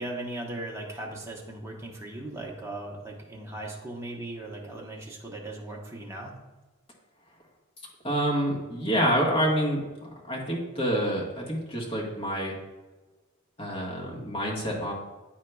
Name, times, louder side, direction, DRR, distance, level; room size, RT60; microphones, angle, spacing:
voice 1, 0.0-6.4, right 1 dB, 15° right, -2 dB, 0.9 m, -38 dB
voice 2, 8.0-9.8 10.2-12.6 13.6-14.9, equal, 25° left, -4 dB, 1.3 m, -27 dB
9.3 x 4.6 x 2.3 m, 1.2 s
head